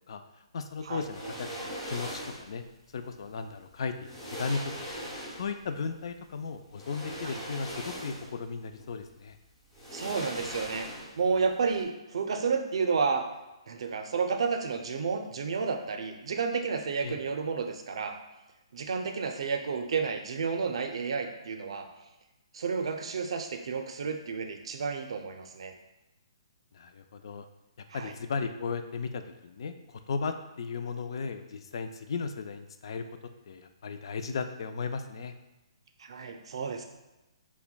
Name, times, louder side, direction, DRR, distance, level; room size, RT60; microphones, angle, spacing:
voice 1, 0.5-2.1 2.4-2.6 2.9-4.7 5.4-9.4 17.0-17.2 26.7-27.5 27.9-33.0 33.5-35.3, left 5 dB, 50° left, 8 dB, 0.3 m, -36 dB
sound 1, 1.0-2.5 3.6-3.7 4.0-5.6 6.7-8.4 8.8-8.9 9.7-11.3 11.6-11.8, equal, 10° left, 0.6 m, -40 dB
voice 2, 9.9-10.9 11.2-13.2 13.7-18.2 18.7-21.9 22.5-25.7 27.9-28.1 36.0-36.8, right 5 dB, 60° right, 5 dB, 0.4 m, -31 dB
5.7 x 2.1 x 2.2 m, 1.0 s
hypercardioid pair, 170°, 3 cm